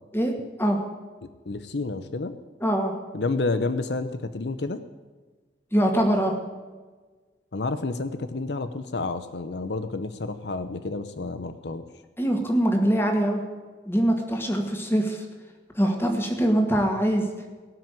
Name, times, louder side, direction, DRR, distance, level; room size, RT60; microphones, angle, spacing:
voice 1, 0.1-0.8 2.6-2.9 5.7-6.3 12.2-13.4 13.9-15.3 15.8-17.3, right 1 dB, 15° left, 3 dB, 2.2 m, -23 dB
voice 2, 1.5-2.3 3.1-4.8 7.5-11.8, left 3 dB, 75° left, 11 dB, 0.8 m, -30 dB
18.0 x 6.1 x 9.1 m, 1.4 s
head